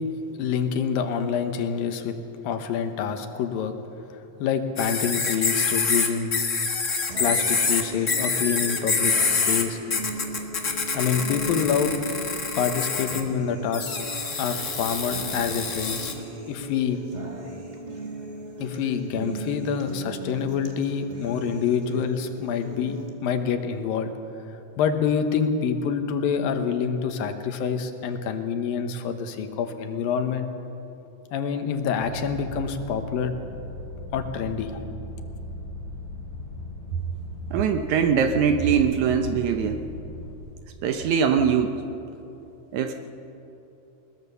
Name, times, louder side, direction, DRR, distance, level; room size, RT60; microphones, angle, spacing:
voice 1, 0.4-2.1 2.4-3.7 4.1-6.3 7.2-9.8 10.9-11.9 12.6-14.0 14.4-16.1 16.5-17.0 18.6-24.1 24.8-30.5 31.3-33.3 34.1-34.7, left 7 dB, 80° left, 7 dB, 2.9 m, -27 dB
sound 1, 4.8-9.6 9.9-13.2 13.7-16.1, left 4 dB, 40° left, 1.0 m, -26 dB
sound 2, 7.1-23.1, right 2 dB, 30° right, 0.8 m, -38 dB
sound 3, 32.0-40.3, left 1 dB, 85° right, 7.4 m, -38 dB
voice 2, 37.5-39.9 40.8-41.7 42.7-42.9, right 7 dB, 70° right, 7 dB, 2.0 m, -22 dB
21.0 x 20.0 x 6.9 m, 2.9 s
omnidirectional pair, 4.1 m